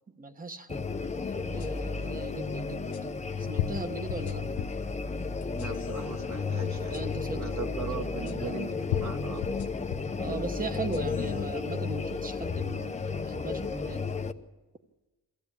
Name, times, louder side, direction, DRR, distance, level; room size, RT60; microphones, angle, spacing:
voice 1, 0.2-3.2 3.5-4.4 6.9-8.6 10.2-13.0 13.2-14.1, right 3 dB, 20° right, 8 dB, 1.2 m, -39 dB
sound 1, 0.7-14.3, left 4 dB, 20° left, 0.8 m, -33 dB
sound 2, 1.6-1.7 2.9-3.0 3.6-4.9 5.4-6.0 6.9-7.0 8.3-8.4 8.9-10.2 10.7-11.3, left 11 dB, 85° left, 1.0 m, -34 dB
voice 2, 5.5-7.0 7.3-9.5, right 5 dB, 45° right, 4 dB, 1.8 m, -39 dB
23.0 x 15.5 x 8.5 m, 1.2 s
cardioid pair, 170°, 38 cm